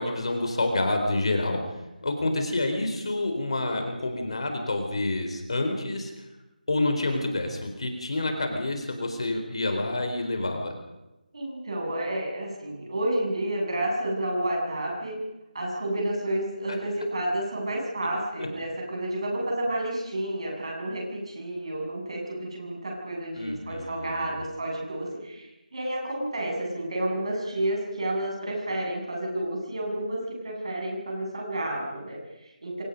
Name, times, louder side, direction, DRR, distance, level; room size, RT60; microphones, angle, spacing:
voice 1, 0.0-1.6 2.0-6.1 6.7-10.7 18.4-18.5 23.4-24.4, left 2 dB, 40° left, 5 dB, 4.1 m, -28 dB
voice 2, 11.3-15.2 15.5-32.8, right 1 dB, 40° right, 0 dB, 7.7 m, -30 dB
27.5 x 26.0 x 5.3 m, 0.97 s
figure-of-eight pair, 180°, 5 cm